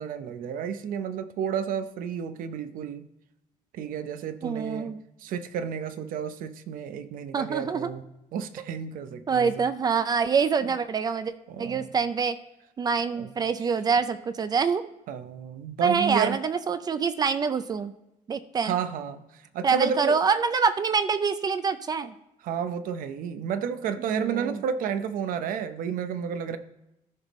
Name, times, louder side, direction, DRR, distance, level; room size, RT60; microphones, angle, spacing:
voice 1, 0.0-3.1 3.7-4.9 5.2-8.0 8.3-9.7 11.5-11.9 13.2-13.3 15.1-16.4 18.6-19.2 19.5-20.2 22.4-26.6, right 7 dB, 75° right, 10 dB, 0.8 m, -31 dB
voice 2, 4.4-5.0 7.3-7.9 9.3-11.3 11.6-12.4 12.8-14.8 15.8-17.9 18.3-18.8 19.6-22.1 24.1-24.6, right 5 dB, 25° right, 12 dB, 0.4 m, -25 dB
14.0 x 5.3 x 3.0 m, 0.87 s
cardioid pair, 165°, 15 cm